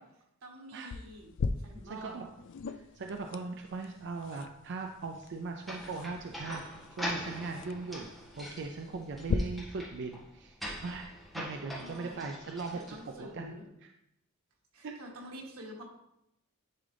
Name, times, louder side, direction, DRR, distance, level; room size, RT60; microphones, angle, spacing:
voice 1, 0.4-1.3 1.6-2.2 11.8-12.3 12.7-13.6 14.7-15.8, equal, 90° right, -1 dB, 1.7 m, -47 dB
sound 1, 0.9-9.3, left 5 dB, 60° left, 0.4 m, -40 dB
voice 2, 1.8-2.3 2.7-8.1 8.4-10.5 10.8-11.1 11.3-13.5 14.8-14.9, right 3 dB, 55° right, 3 dB, 0.5 m, -39 dB
sound 2, 5.6-13.3, equal, ahead, 1.8 m, -43 dB
10.5 x 3.8 x 3.4 m, 0.84 s
head